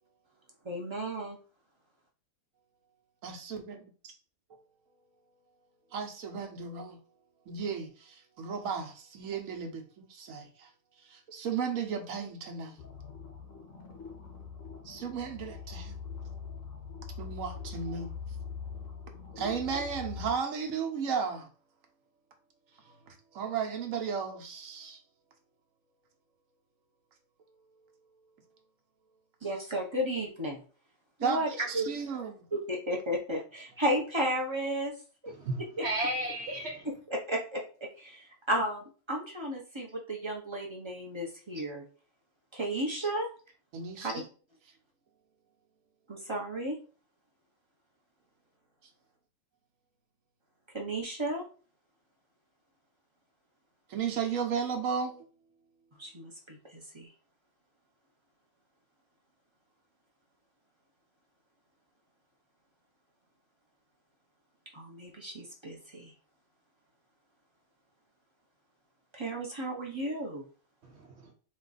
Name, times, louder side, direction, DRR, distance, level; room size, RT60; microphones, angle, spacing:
voice 1, 0.6-1.4 29.4-30.6 31.2-31.5 31.7-31.9 32.5-34.9 35.2-35.3 35.8-35.9 37.1-37.6 38.0-41.8 42.5-43.3 44.0-44.1 46.1-46.8 50.7-51.4 56.0-57.1 64.7-66.1 69.1-70.4, right 1 dB, 25° right, 0.7 m, -33 dB
voice 2, 3.2-4.1 5.9-7.0 7.5-10.7 11.1-12.8 14.8-16.0 17.2-18.1 19.4-21.5 23.1-25.0 31.2-32.4 43.7-44.2 53.9-55.2, right 6 dB, 85° right, 1.2 m, -34 dB
sound 1, 12.8-20.3, left 6 dB, 85° left, 1.3 m, -42 dB
voice 3, 35.4-36.9 70.8-71.3, right 1 dB, 60° right, 1.0 m, -34 dB
4.2 x 2.4 x 3.9 m
omnidirectional pair, 1.3 m